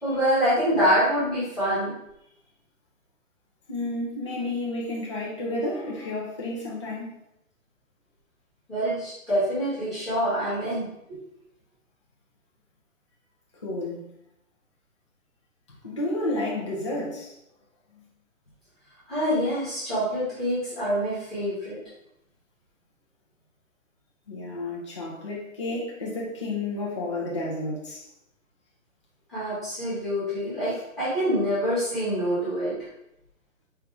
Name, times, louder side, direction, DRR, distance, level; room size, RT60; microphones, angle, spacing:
voice 1, 0.0-1.9 8.7-11.2 19.1-21.8 29.3-32.7, equal, ahead, -13 dB, 0.9 m, -26 dB
voice 2, 3.7-7.1 13.6-14.1 15.8-17.3 24.3-28.0, left 2 dB, 25° left, -6 dB, 0.5 m, -31 dB
4.5 x 2.6 x 3.4 m, 0.81 s
hypercardioid pair, 165°, 41 cm